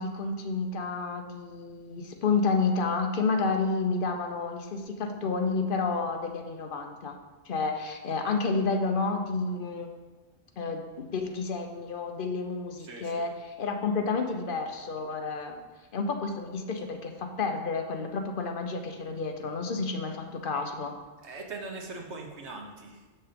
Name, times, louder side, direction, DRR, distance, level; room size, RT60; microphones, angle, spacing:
voice 1, 0.0-7.2 7.4-9.9 10.6-15.6 15.9-20.9, left 4 dB, 50° left, 4 dB, 0.9 m, -30 dB
voice 2, 12.8-13.3 21.2-23.1, right 3 dB, 65° right, 1 dB, 1.3 m, -41 dB
5.9 x 5.7 x 5.1 m, 1.2 s
omnidirectional pair, 1.2 m